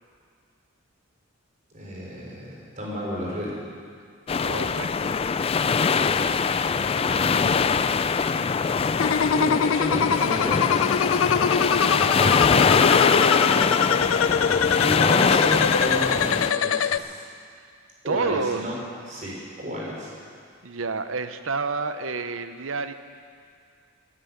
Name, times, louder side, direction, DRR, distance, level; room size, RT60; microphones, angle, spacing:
voice 1, 1.7-3.6 5.7-6.7 7.1-7.6 9.3-11.0 14.8-17.3 18.0-18.7 19.1-20.1, equal, 40° right, -4 dB, 4.6 m, -32 dB
sound 1, 4.3-16.5, left 5 dB, 30° left, 0.3 m, -22 dB
voice 2, 4.4-5.2 12.1-13.2 18.1-18.7 20.6-22.9, right 4 dB, 80° right, 10 dB, 0.8 m, -30 dB
sound 2, 9.0-17.0, left 7 dB, 85° left, 0.5 m, -23 dB
14.5 x 10.0 x 9.7 m, 2.2 s
head